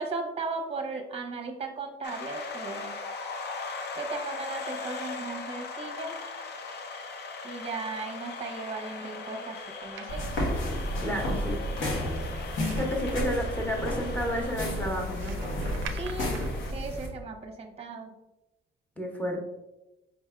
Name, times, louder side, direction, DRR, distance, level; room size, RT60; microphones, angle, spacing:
voice 1, 0.0-2.9 4.0-6.1 7.4-10.3 15.9-16.3 16.7-18.1, right 4 dB, 30° right, 3 dB, 0.8 m, -36 dB
sound 1, 2.0-16.7, left 4 dB, 55° left, 0.6 m, -39 dB
sound 2, 9.6-17.1, right 6 dB, 75° right, 0.4 m, -47 dB
sound 3, 10.1-17.1, left 1 dB, 75° left, 1.1 m, -32 dB
voice 2, 11.0-11.6 12.7-15.4 19.0-19.4, equal, 5° left, 0 dB, 1.0 m, -31 dB
5.0 x 3.4 x 2.3 m, 0.96 s
cardioid pair, 90°, 20 cm